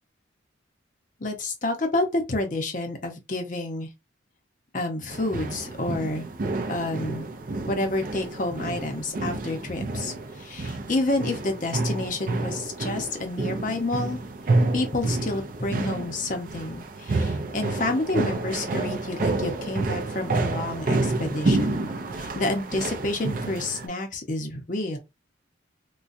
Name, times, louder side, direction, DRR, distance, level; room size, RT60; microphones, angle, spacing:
voice 1, 1.2-3.9 4.7-6.3 6.7-7.2 7.7-14.2 14.7-21.8 22.1-25.0, left 2 dB, 40° left, 0.7 m, -29 dB
sound 1, 5.1-23.9, right 2 dB, 45° right, 0.4 m, -29 dB
3.9 x 2.2 x 2.5 m
head